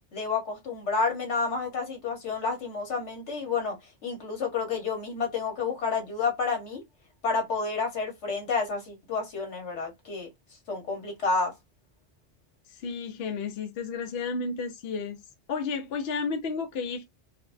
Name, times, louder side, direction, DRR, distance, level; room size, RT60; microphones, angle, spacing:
voice 1, 0.1-3.8 4.0-6.8 7.2-10.3 10.7-11.5, left 4 dB, 80° left, 1.5 m, -30 dB
voice 2, 12.7-15.2 15.5-17.0, left 4 dB, 65° left, 0.8 m, -32 dB
4.5 x 2.0 x 2.5 m
omnidirectional pair, 1.2 m